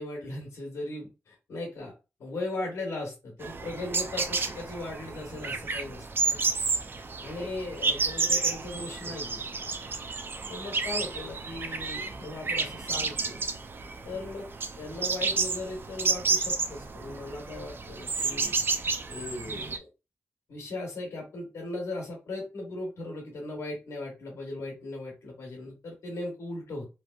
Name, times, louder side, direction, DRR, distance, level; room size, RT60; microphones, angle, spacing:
voice 1, 0.0-1.9 2.2-6.4 7.2-9.4 10.5-13.4 14.0-14.5 14.8-18.6 19.1-19.9 20.5-26.9, left 2 dB, 85° left, 0 dB, 1.1 m, -38 dB
sound 1, 3.4-19.8, right 4 dB, 50° right, 0.4 m, -31 dB
3.0 x 2.8 x 2.3 m, 0.29 s
cardioid pair, 70°, 5 cm